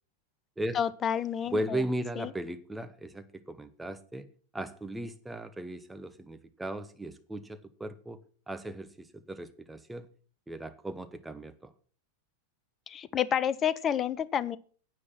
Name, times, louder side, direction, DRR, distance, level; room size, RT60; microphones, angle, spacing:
voice 1, 0.7-1.8 2.2-2.3 12.9-14.6, left 9 dB, 25° left, 17 dB, 0.7 m, -29 dB
voice 2, 1.5-4.3 4.5-8.2 8.5-10.1 10.5-11.7, right 1 dB, 5° right, 10 dB, 1.1 m, -37 dB
9.8 x 8.9 x 5.9 m, 0.42 s
figure-of-eight pair, 90°, 0 cm